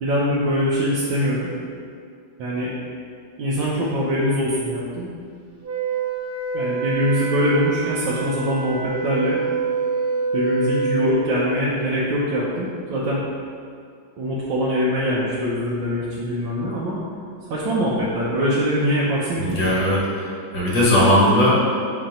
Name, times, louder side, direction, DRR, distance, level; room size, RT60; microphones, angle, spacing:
voice 1, 0.0-1.5 2.4-2.7 3.4-5.1 6.5-9.4 10.3-13.2 14.2-17.0 17.5-19.7, equal, 75° right, -7 dB, 1.5 m, -23 dB
Wind instrument woodwind instrument, 5.6-11.1, right 4 dB, 60° right, 0.6 m, -26 dB
voice 2, 19.4-20.1 20.5-21.5, equal, 65° left, -6 dB, 2.2 m, -17 dB
6.6 x 3.3 x 5.1 m, 2.3 s
omnidirectional pair, 2.1 m